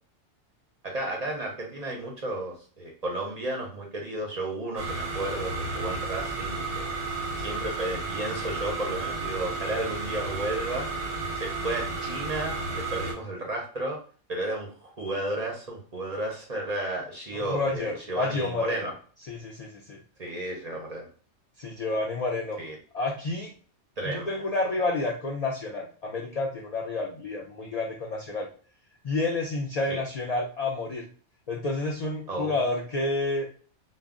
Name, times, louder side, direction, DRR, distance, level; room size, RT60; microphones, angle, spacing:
voice 1, 0.8-7.0 7.4-10.9 11.3-14.0 14.3-18.9 20.2-21.1 22.6-22.8 24.0-24.4 29.9-30.0 32.3-32.6, right 1 dB, 45° right, 0 dB, 0.5 m, -33 dB
sound 1, 4.8-13.1, right 3 dB, 90° right, 1.0 m, -32 dB
voice 2, 17.4-18.8 19.3-20.0 21.6-22.6 22.9-23.5 24.0-28.5 29.0-31.0 31.5-33.5, left 2 dB, 85° left, 0 dB, 0.3 m, -29 dB
2.3 x 2.0 x 3.5 m, 0.41 s
omnidirectional pair, 1.2 m